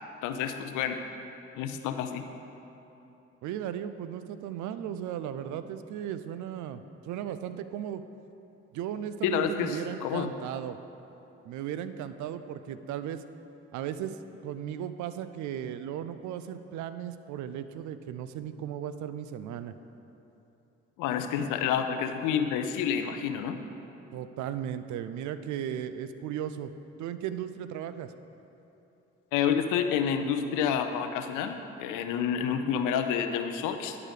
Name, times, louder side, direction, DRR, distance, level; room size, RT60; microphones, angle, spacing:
voice 1, 0.2-1.0 1.6-2.3 9.2-10.3 21.0-23.6 29.3-34.0, left 8 dB, 75° left, 8 dB, 0.6 m, -29 dB
voice 2, 3.4-8.0 8.7-10.8 11.4-13.2 13.7-19.7 24.1-26.7 27.0-28.1, right 10 dB, 65° right, 11 dB, 0.5 m, -36 dB
10.5 x 4.8 x 4.9 m, 3.0 s
hypercardioid pair, 45°, 31 cm